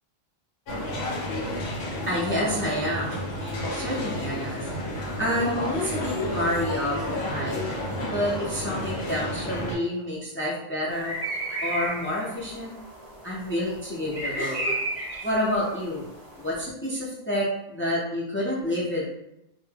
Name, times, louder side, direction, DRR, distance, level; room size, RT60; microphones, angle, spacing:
sound 1, 0.7-9.8, left 1 dB, 85° left, 0.9 m, -31 dB
voice 1, 2.1-4.7 5.2-7.6 8.1-11.1 11.6-12.7 13.2-14.8 15.2-16.0 16.4-19.0, left 1 dB, 20° left, -6 dB, 0.4 m, -29 dB
sound 2, 10.9-16.6, right 1 dB, 40° right, 0.6 m, -34 dB
2.2 x 2.1 x 3.3 m, 0.84 s
omnidirectional pair, 1.0 m